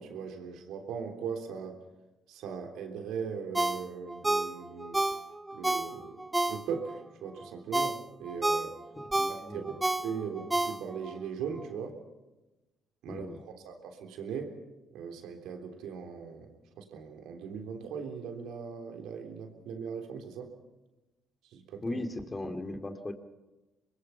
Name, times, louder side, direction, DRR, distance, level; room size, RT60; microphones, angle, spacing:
voice 1, 0.0-1.8 2.3-5.0 5.5-8.8 9.4-12.0 13.0-14.6 14.9-20.5 21.4-22.0, right 6 dB, 80° right, 5 dB, 3.4 m, -39 dB
Ringtone, 3.5-7.0 7.4-11.2 11.6-11.7, right 2 dB, 15° right, 0.9 m, -31 dB
voice 2, 9.0-9.7 13.1-13.4 21.8-23.1, left 2 dB, 25° left, 6 dB, 2.5 m, -38 dB
25.5 x 21.5 x 5.8 m, 1.1 s
supercardioid pair, 65°, 0 cm